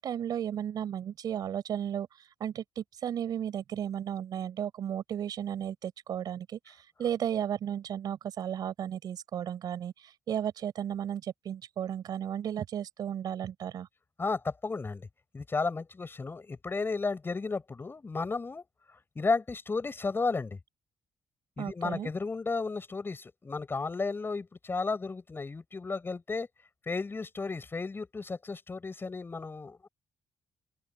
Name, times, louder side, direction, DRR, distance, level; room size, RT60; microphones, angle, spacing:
voice 1, 0.0-13.9 21.6-22.1, right 9 dB, 70° right, 4.8 m, -34 dB
voice 2, 14.2-15.1 15.3-18.6 19.2-20.6 21.6-26.5 26.9-29.9, left 4 dB, 30° left, 7.1 m, -33 dB
open air
cardioid pair, 70°, 7 cm